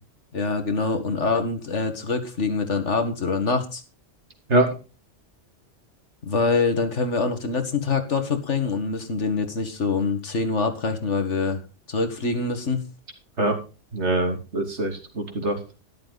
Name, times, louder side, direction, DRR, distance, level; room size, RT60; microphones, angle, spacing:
voice 1, 0.3-3.8 6.2-11.6 11.9-12.8, left 4 dB, 75° left, 7 dB, 2.2 m, -25 dB
voice 2, 13.9-15.6, right 2 dB, 70° right, 4 dB, 3.0 m, -23 dB
12.5 x 11.5 x 4.1 m, 0.32 s
omnidirectional pair, 1.2 m